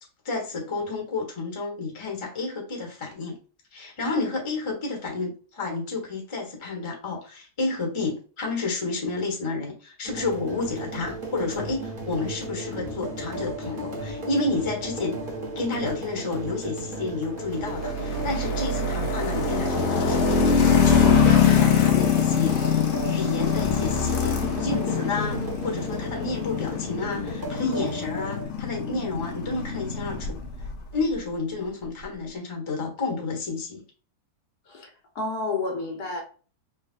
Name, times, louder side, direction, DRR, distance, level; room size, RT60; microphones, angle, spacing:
voice 1, 0.2-3.4 3.7-15.2 15.5-25.4 25.6-30.4 30.9-33.8, left 3 dB, 20° left, 1.1 m, -30 dB
sound 1, 10.0-28.4, right 1 dB, 35° right, 1.5 m, -35 dB
sound 2, 17.6-30.8, left 6 dB, 55° left, 0.8 m, -24 dB
voice 2, 35.1-36.2, left 3 dB, 70° left, 1.6 m, -29 dB
4.1 x 3.2 x 2.3 m
omnidirectional pair, 1.7 m